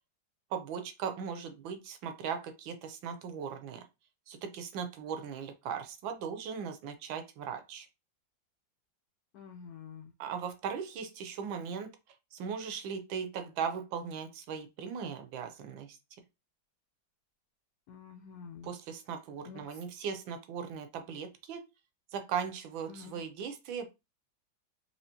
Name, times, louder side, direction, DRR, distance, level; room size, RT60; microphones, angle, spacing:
voice 1, 0.5-3.8 4.3-7.9 10.2-11.9 12.3-16.0 18.6-21.6 22.1-23.9, right 7 dB, 75° right, 7 dB, 1.4 m, -38 dB
voice 2, 9.3-10.1 17.9-18.7 19.5-19.8 22.9-23.2, left 6 dB, 80° left, 5 dB, 0.8 m, -48 dB
4.3 x 2.8 x 2.8 m, 0.25 s
omnidirectional pair, 2.2 m